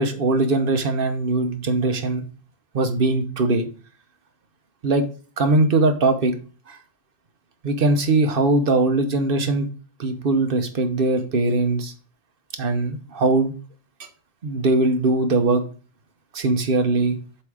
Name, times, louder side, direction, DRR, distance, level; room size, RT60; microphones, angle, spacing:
voice 1, 0.0-2.2 2.7-3.7 4.8-5.0 5.4-6.3 7.6-9.7 10.0-11.9 12.6-13.5 14.4-15.6 16.3-17.2, right 2 dB, 55° right, 7 dB, 1.1 m, -20 dB
7.5 x 3.6 x 4.9 m, 0.38 s
omnidirectional pair, 1.1 m